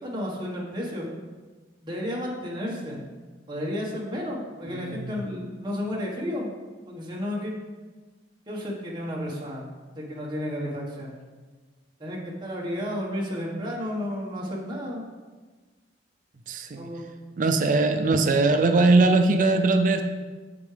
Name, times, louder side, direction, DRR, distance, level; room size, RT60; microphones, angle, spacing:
voice 1, 0.0-1.1 1.8-3.0 3.5-6.5 6.9-7.6 8.5-9.7 9.9-11.1 12.0-15.0 16.7-17.4, equal, 25° right, -4 dB, 1.5 m, -32 dB
voice 2, 4.7-5.1 16.5-16.9 17.4-20.0, right 3 dB, 45° right, 6 dB, 0.4 m, -21 dB
8.5 x 7.1 x 3.4 m, 1.3 s
head